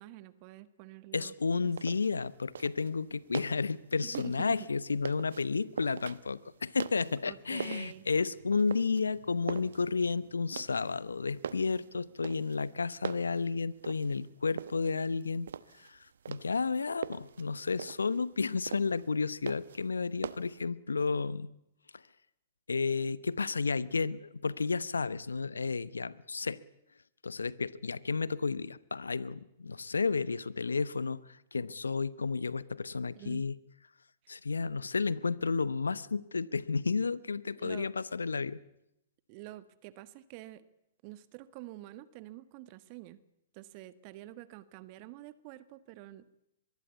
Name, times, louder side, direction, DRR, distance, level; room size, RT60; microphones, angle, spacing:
voice 1, 0.0-1.3 1.6-1.7 4.0-4.7 7.2-8.1 33.1-33.4 34.2-34.3 37.6-37.9 39.3-40.7 41.0-43.2 43.5-46.3, right 16 dB, 40° right, 15 dB, 1.4 m, -47 dB
voice 2, 1.1-15.5 15.8-16.0 16.3-21.5 22.7-26.6 27.2-33.6 34.3-38.6, left 4 dB, 85° left, 18 dB, 1.0 m, -32 dB
sound 1, 1.5-20.6, right 7 dB, 70° right, 1.0 m, -44 dB
24.5 x 22.0 x 8.3 m, 0.83 s
hypercardioid pair, 115°, 0 cm